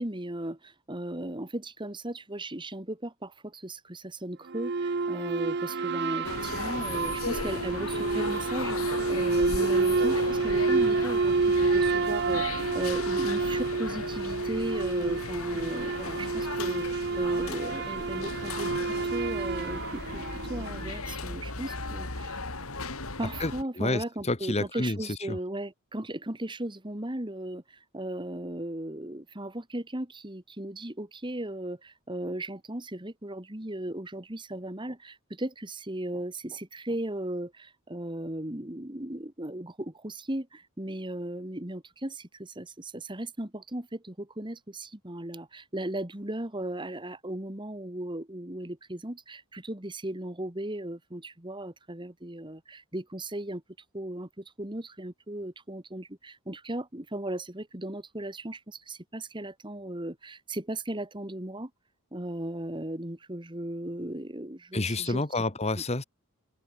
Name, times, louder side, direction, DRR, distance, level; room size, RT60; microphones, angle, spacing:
voice 1, 0.0-22.4 23.2-53.6 53.9-61.7 62.1-65.2, right 1 dB, 20° right, 1.9 m, -36 dB
sound 1, 4.5-21.1, right 4 dB, 50° right, 0.6 m, -29 dB
sound 2, 6.2-23.6, left 3 dB, 75° left, 3.7 m, -36 dB
voice 2, 23.8-25.0 25.3-25.4 64.7-66.0, left 2 dB, 30° left, 1.6 m, -29 dB
open air
head